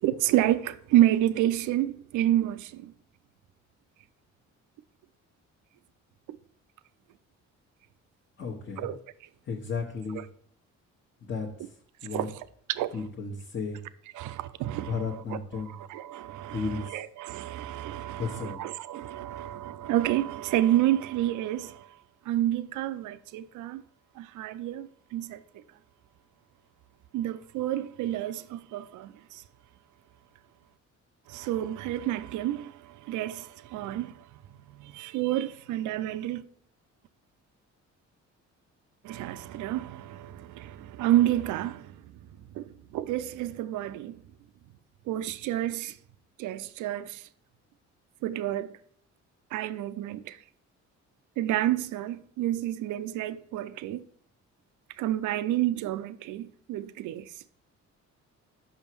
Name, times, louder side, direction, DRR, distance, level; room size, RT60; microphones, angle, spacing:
voice 1, 0.0-2.9 8.8-9.0 10.1-10.2 12.1-12.3 12.8-12.9 14.2-15.0 15.7-22.0 22.3-23.8 24.2-25.6 27.1-29.4 31.3-36.4 39.0-42.0 42.5-44.2 45.1-46.0 46.4-47.3 48.2-48.7 49.5-50.4 51.4-54.1 54.9-57.4, right 13 dB, 80° right, 0.5 m, -29 dB
voice 2, 8.4-8.9 9.4-10.3 11.2-11.7 12.0-12.3 12.9-13.8 14.8-15.8 16.5-17.0 18.2-18.7, left 4 dB, 40° left, 1.1 m, -34 dB
5.8 x 5.5 x 4.5 m
cardioid pair, 90°, 30 cm